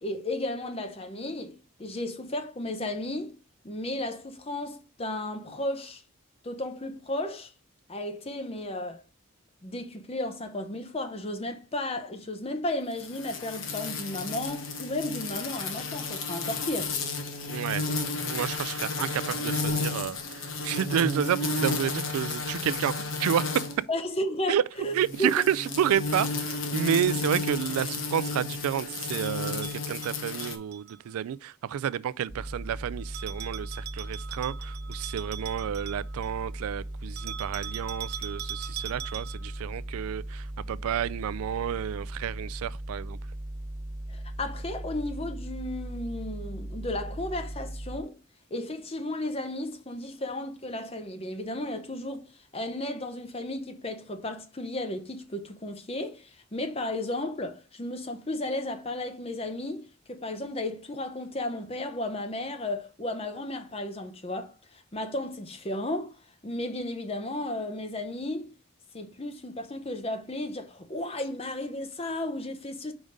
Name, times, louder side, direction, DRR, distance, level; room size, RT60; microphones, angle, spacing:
voice 1, 0.0-3.4 3.6-6.0 6.4-7.5 7.9-9.0 9.6-16.9 23.9-24.9 25.2-25.3 44.1-48.2 48.5-66.1 66.4-68.5 68.9-72.9, left 1 dB, 25° left, 0.7 m, -34 dB
sound 1, 13.0-23.8 24.9-30.5, left 3 dB, 70° left, 1.1 m, -32 dB
voice 2, 17.5-17.9 18.3-23.7 24.5-24.6 24.9-43.2, right 9 dB, 90° right, 0.3 m, -30 dB
Bell, 29.2-31.0 33.1-36.4 37.2-39.6, right 11 dB, 50° right, 0.7 m, -41 dB
sound 2, 32.3-48.0, right 1 dB, 35° right, 1.2 m, -38 dB
5.0 x 5.0 x 3.9 m
head